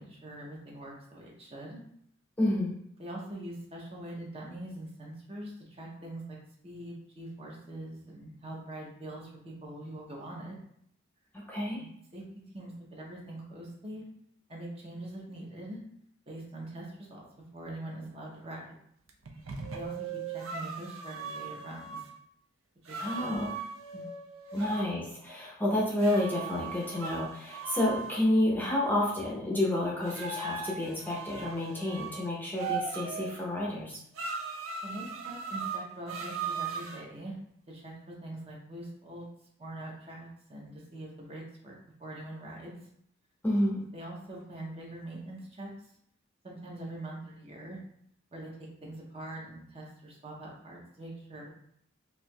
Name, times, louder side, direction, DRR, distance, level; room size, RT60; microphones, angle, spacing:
voice 1, 0.0-1.8 3.0-6.4 6.6-10.6 11.7-12.2 12.5-14.0 14.5-15.8 16.3-17.3 17.5-18.8 19.6-22.1 22.8-23.3 23.9-24.0 24.5-24.7 34.3-34.4 34.8-37.4 37.7-39.3 39.6-42.8 43.9-45.9 46.4-47.8 48.3-51.5, right 1 dB, 30° right, -2 dB, 0.6 m, -43 dB
voice 2, 2.4-2.7 11.3-11.8 23.0-23.5 24.5-34.0 43.4-43.8, left 1 dB, 10° left, -4 dB, 0.6 m, -30 dB
sound 1, 19.1-22.0 22.9-24.9 26.0-28.2 30.0-32.1 32.6-33.4 34.2-37.0, right 5 dB, 80° right, 0.5 m, -38 dB
4.3 x 2.6 x 2.2 m, 0.69 s
head